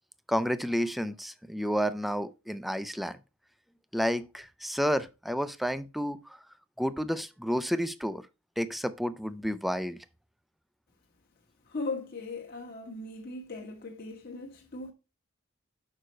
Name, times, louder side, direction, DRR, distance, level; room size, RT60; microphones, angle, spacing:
voice 1, 0.3-3.2 3.9-6.4 6.8-8.3 8.6-10.0, equal, ahead, 0.4 m, -30 dB
voice 2, 11.7-14.9, left 3 dB, 50° left, 1.2 m, -38 dB
6.6 x 5.2 x 4.4 m
head